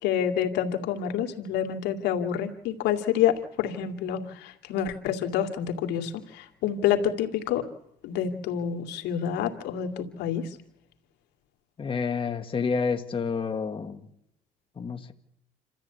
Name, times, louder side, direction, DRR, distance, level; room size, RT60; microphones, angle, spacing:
voice 1, 0.0-7.7 8.0-10.5, left 9 dB, 85° left, 4 dB, 2.6 m, -28 dB
voice 2, 11.8-14.0 14.8-15.1, left 5 dB, 30° left, 6 dB, 1.7 m, -29 dB
28.5 x 14.0 x 8.4 m, 0.80 s
cardioid pair, 110°, 17 cm